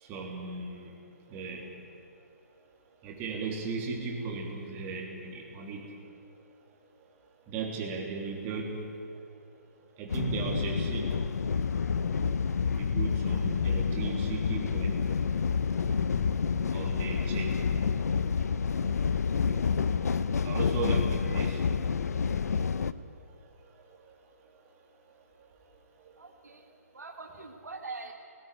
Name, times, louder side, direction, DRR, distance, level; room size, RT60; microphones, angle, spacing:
voice 1, 0.1-0.9 1.3-1.7 3.0-5.9 7.5-8.9 10.0-11.2 12.8-15.1 16.7-17.6 20.4-21.7 26.0-26.1, right 4 dB, 20° right, 0 dB, 3.3 m, -36 dB
sound 1, 10.1-22.9, left 6 dB, 65° left, 0.8 m, -28 dB
voice 2, 26.2-26.7 26.9-28.1, right 3 dB, 85° right, 1 dB, 2.3 m, -43 dB
18.5 x 18.0 x 9.9 m, 2.6 s
hypercardioid pair, 150°, 9 cm